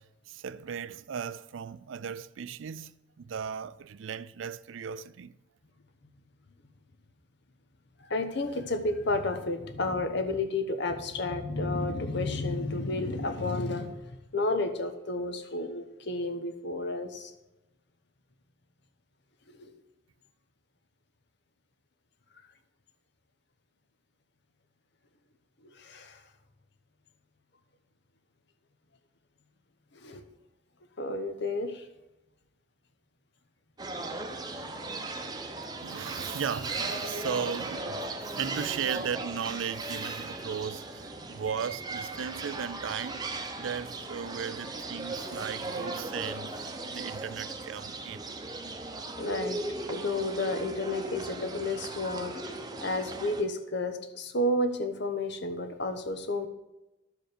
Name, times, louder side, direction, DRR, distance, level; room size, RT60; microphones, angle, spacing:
voice 1, 0.0-5.3 35.8-43.2 43.6-48.3, right 7 dB, 75° right, 0.4 m, -36 dB
voice 2, 8.1-17.3 19.6-19.7 25.6-26.2 30.0-30.2 31.0-31.8 34.6-34.7 49.2-49.6 49.9-56.5, left 2 dB, 60° left, 1.0 m, -31 dB
sound 1, 33.8-53.4, right 2 dB, 20° right, 0.9 m, -37 dB
11.5 x 5.1 x 6.7 m
head